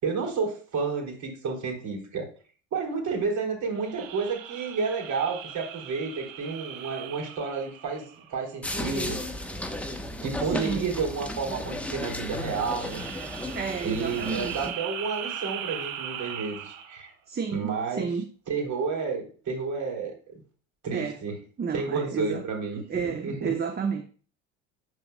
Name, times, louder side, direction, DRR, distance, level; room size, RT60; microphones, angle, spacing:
voice 1, 0.0-2.3 2.7-9.5 10.2-13.1 13.8-17.1 17.5-18.1 18.5-20.4 20.8-21.4 21.7-23.5, right 4 dB, 50° right, 3.6 m, -31 dB
sound 1, 3.8-8.6 12.4-17.1, right 9 dB, 85° right, 1.2 m, -39 dB
sound 2, 8.6-14.7, left 1 dB, 5° left, 1.0 m, -34 dB
voice 2, 10.5-10.9 13.5-14.6 17.3-18.3 20.9-21.2 21.6-22.4 22.9-24.0, right 6 dB, 25° right, 1.0 m, -31 dB
12.0 x 4.8 x 2.2 m
hypercardioid pair, 80°, 38 cm